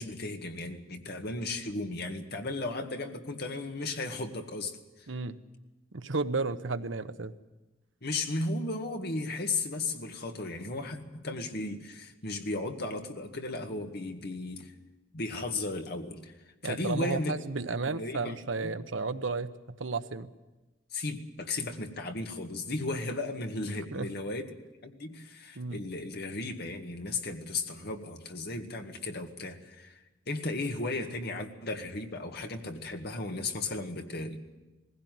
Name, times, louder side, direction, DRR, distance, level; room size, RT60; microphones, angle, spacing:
voice 1, 0.0-5.1 8.0-14.7 15.1-16.4 16.6-17.3 17.8-18.7 20.9-34.4, left 2 dB, 55° left, 4 dB, 1.9 m, -35 dB
voice 2, 5.1-5.4 5.9-7.3 16.6-20.3 23.9-24.1 25.6-25.8, right 3 dB, 75° right, 11 dB, 0.9 m, -33 dB
19.5 x 16.0 x 9.4 m, 1.1 s
head